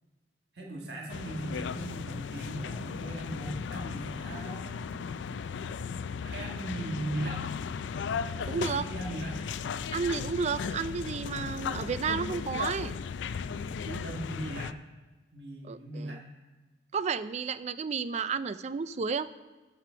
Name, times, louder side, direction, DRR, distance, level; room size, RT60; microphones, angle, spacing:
voice 1, 0.5-5.0 6.2-7.5 8.3-9.4 13.6-14.8 15.3-16.4, right 1 dB, 60° right, -2 dB, 1.5 m, -39 dB
sound 1, 1.1-14.7, left 6 dB, 75° left, 0.3 m, -36 dB
voice 2, 8.5-8.8 9.9-12.9 15.6-16.2 16.9-19.3, right 5 dB, 40° right, 15 dB, 0.3 m, -32 dB
12.0 x 5.0 x 5.7 m, 1.3 s
head